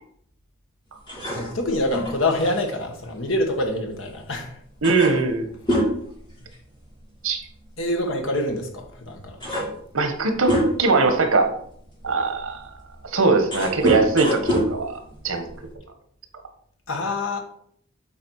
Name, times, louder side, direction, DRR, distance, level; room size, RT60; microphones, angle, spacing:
sound 1, 1.1-4.1 4.4-4.5 4.8-7.0 7.3-7.5 8.5-8.6 9.1-11.0 11.6-15.7, equal, 20° left, 2.9 m, -27 dB
voice 1, 1.3-4.6 7.8-9.4 16.9-17.4, left 1 dB, 70° left, 3 dB, 1.5 m, -26 dB
voice 2, 4.8-5.5 7.2-7.4 9.9-11.5 12.0-12.6 13.0-15.4, right 3 dB, 90° right, 6 dB, 1.3 m, -21 dB
8.4 x 4.3 x 4.7 m, 0.67 s
head